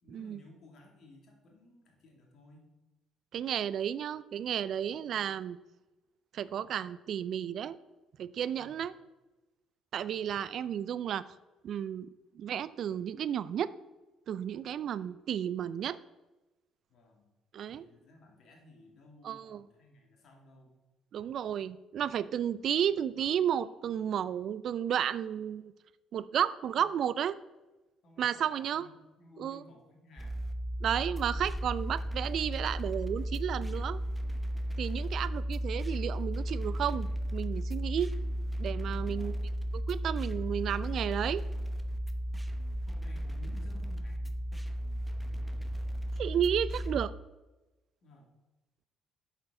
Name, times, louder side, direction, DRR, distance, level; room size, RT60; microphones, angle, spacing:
voice 1, 0.0-2.7 8.5-8.8 16.9-17.3 17.7-20.7 26.7-26.9 28.0-30.5 39.0-39.4 42.1-42.4 42.8-44.4 48.0-48.3, left 2 dB, 55° left, 1 dB, 2.5 m, -56 dB
voice 2, 3.3-5.6 6.3-7.8 8.2-8.9 9.9-11.2 11.6-12.1 12.4-13.7 14.3-16.0 17.5-17.9 19.2-19.6 21.1-25.7 26.1-27.4 28.2-28.9 29.4-29.6 30.8-34.0 34.8-38.1 38.6-39.4 39.7-41.4 46.2-47.1, right 9 dB, 60° right, 17 dB, 0.3 m, -32 dB
sound 1, 30.2-47.1, equal, ahead, 0.9 m, -34 dB
8.9 x 6.8 x 3.8 m, 1.1 s
hypercardioid pair, 50°, 0 cm